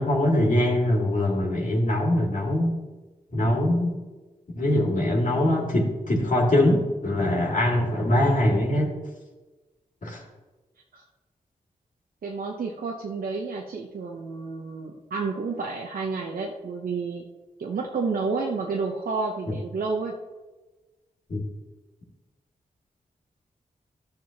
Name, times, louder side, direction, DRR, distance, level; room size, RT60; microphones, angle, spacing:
voice 1, 0.0-2.7 3.3-4.0 4.5-8.9 10.0-10.2 21.3-21.4, left 1 dB, 60° left, -2 dB, 2.2 m, -22 dB
voice 2, 12.2-17.2 17.6-20.1, right 4 dB, 75° right, 0 dB, 0.9 m, -30 dB
12.0 x 6.7 x 2.9 m, 1.2 s
cardioid pair, 50°, 15 cm